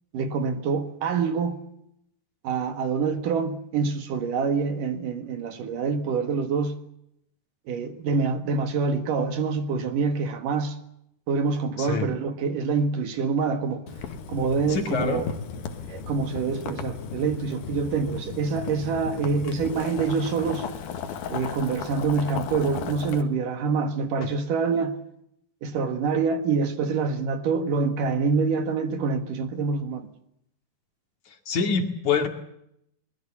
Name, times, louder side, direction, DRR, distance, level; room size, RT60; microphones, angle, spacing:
voice 1, 0.1-1.6 2.4-6.8 7.7-10.8 11.3-13.8 14.3-15.3 15.9-20.7 21.3-25.0 25.6-30.1, right 5 dB, 60° right, 2.9 m, -26 dB
Boiling, 13.9-23.2, left 6 dB, 65° left, 3.4 m, -35 dB
voice 2, 14.7-15.2 31.5-32.3, left 5 dB, 50° left, 3.2 m, -25 dB
24.0 x 21.5 x 7.2 m
omnidirectional pair, 4.9 m